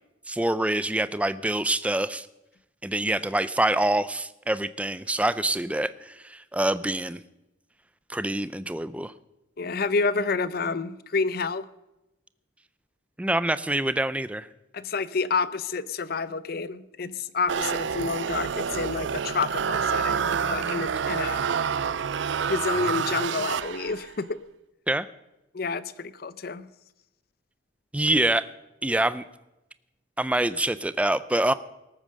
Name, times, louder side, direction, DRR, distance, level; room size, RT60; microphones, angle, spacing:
voice 1, 0.3-2.3 2.8-7.2 8.1-9.1 13.2-14.5 24.9-25.1 27.9-28.5 28.8-29.2 30.2-31.5, right 1 dB, 5° right, 15 dB, 0.5 m, -25 dB
voice 2, 9.6-11.7 14.7-21.4 22.5-24.4 25.5-26.7, left 4 dB, 55° left, 16 dB, 0.6 m, -29 dB
sound 1, 17.5-24.1, right 6 dB, 70° right, 0.5 m, -28 dB
19.0 x 8.9 x 6.4 m, 0.93 s
head